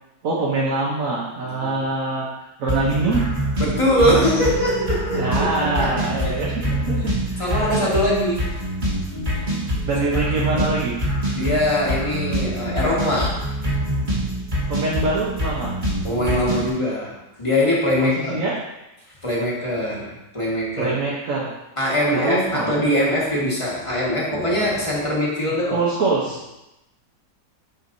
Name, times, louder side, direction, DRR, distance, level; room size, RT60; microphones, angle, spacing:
voice 1, 0.2-3.2 5.1-7.7 9.3-9.4 9.8-10.9 14.7-15.7 18.0-18.5 20.8-21.5 22.1-22.7 25.7-26.4, right 3 dB, 55° right, -5 dB, 1.3 m, -24 dB
voice 2, 1.4-1.8 3.6-5.9 7.4-8.5 10.1-10.2 10.5-10.6 11.3-13.4 16.0-18.4 19.2-20.9 21.8-25.8, left 1 dB, 20° left, -5 dB, 1.5 m, -22 dB
sound 1, 2.7-16.7, equal, 30° right, 1.3 m, -25 dB
9.5 x 4.5 x 2.7 m, 0.94 s
omnidirectional pair, 1.9 m